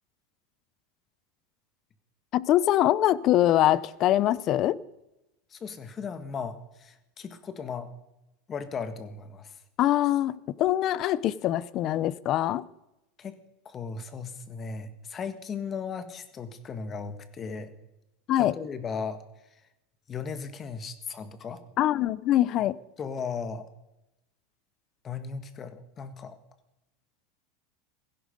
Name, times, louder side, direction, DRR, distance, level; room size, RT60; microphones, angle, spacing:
voice 1, 2.3-4.8 9.8-12.6 18.3-18.6 21.8-22.8, left 13 dB, 40° left, 0.6 m, -23 dB
voice 2, 5.5-7.9 8.5-9.5 13.2-13.4 13.6-17.7 18.4-19.2 20.1-21.6 23.0-23.7 25.0-26.4, left 5 dB, 25° left, 1.6 m, -36 dB
16.5 x 16.5 x 5.3 m
supercardioid pair, 140°, 0 cm